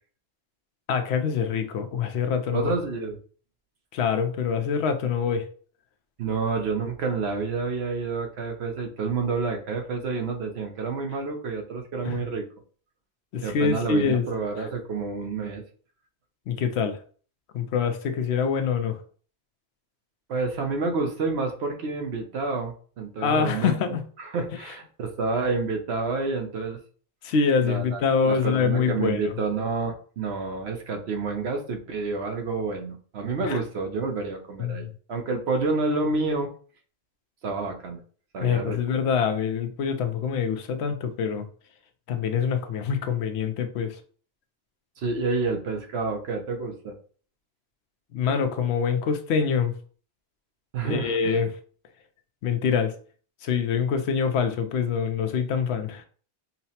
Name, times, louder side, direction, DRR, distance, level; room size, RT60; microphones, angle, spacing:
voice 1, 0.9-2.7 3.9-5.5 12.0-12.2 13.3-14.3 16.5-17.0 17.5-19.0 23.2-24.0 27.2-29.3 33.4-33.6 34.6-34.9 38.4-41.5 42.1-44.0 48.1-49.7 50.8-51.5 52.4-53.0 53.4-56.1, left 6 dB, 70° left, 0.8 m, -25 dB
voice 2, 2.5-3.2 6.2-12.4 13.4-15.6 20.3-26.8 27.6-36.5 37.4-38.0 38.3-38.8 45.0-47.0 50.7-51.4, right 4 dB, 70° right, 0.9 m, -29 dB
5.6 x 2.0 x 2.8 m
omnidirectional pair, 1.2 m